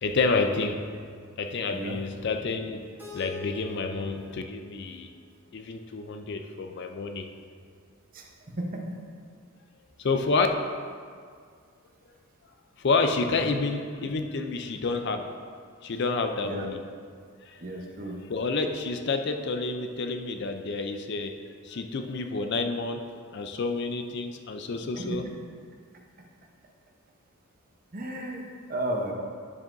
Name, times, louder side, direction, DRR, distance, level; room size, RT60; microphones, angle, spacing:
voice 1, 0.0-0.9 1.4-2.9 3.1-5.1 5.5-7.3 10.0-10.5 12.8-15.3 15.8-16.8 17.5-17.9 18.3-21.4 21.6-23.0 23.3-25.3, left 3 dB, 50° left, 6 dB, 0.4 m, -29 dB
Keyboard (musical), 3.0-5.9, left 3 dB, 10° right, 1.0 m, -46 dB
voice 2, 17.6-18.2 25.0-25.2 27.9-29.1, right 1 dB, 40° right, 0 dB, 0.8 m, -33 dB
9.6 x 7.5 x 2.6 m, 2.1 s
head